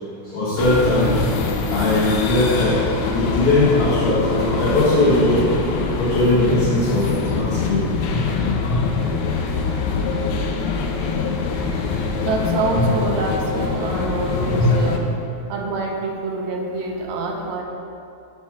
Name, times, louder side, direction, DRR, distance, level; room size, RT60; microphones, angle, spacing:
voice 1, 0.3-1.3 1.7-2.8 3.1-5.4 6.0-7.0 7.3-7.8 8.1-8.2 8.7-8.8 14.5-14.8, left 1 dB, 55° left, -10 dB, 2.2 m, -19 dB
sound 1, 0.6-15.0, left 5 dB, 85° left, 1.9 m, -24 dB
voice 2, 12.2-15.1 15.5-17.6, right 3 dB, 80° right, 1 dB, 1.9 m, -26 dB
5.9 x 4.4 x 5.9 m, 2.5 s
omnidirectional pair, 3.3 m